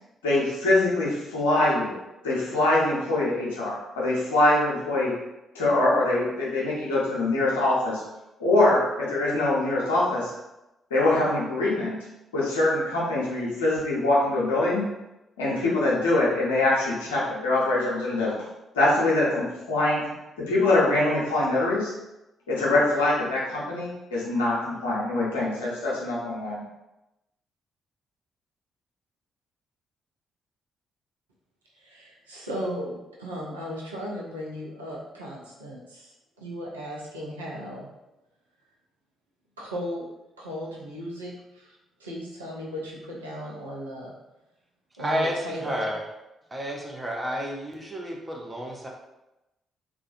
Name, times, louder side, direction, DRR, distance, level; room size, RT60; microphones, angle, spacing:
voice 1, 0.2-2.0 2.2-5.1 5.5-8.0 8.4-10.3 10.9-12.0 12.3-14.8 15.4-18.3 18.7-20.1 20.4-21.9 22.5-26.6, left 2 dB, 75° left, -6 dB, 0.6 m, -23 dB
voice 2, 31.8-37.9 39.6-40.1 40.4-44.1 45.0-45.9, equal, 80° right, -4 dB, 0.4 m, -36 dB
voice 3, 45.0-46.0 46.5-48.9, equal, 20° right, -1 dB, 0.6 m, -30 dB
2.4 x 2.1 x 2.5 m, 0.95 s
figure-of-eight pair, 40°, 0 cm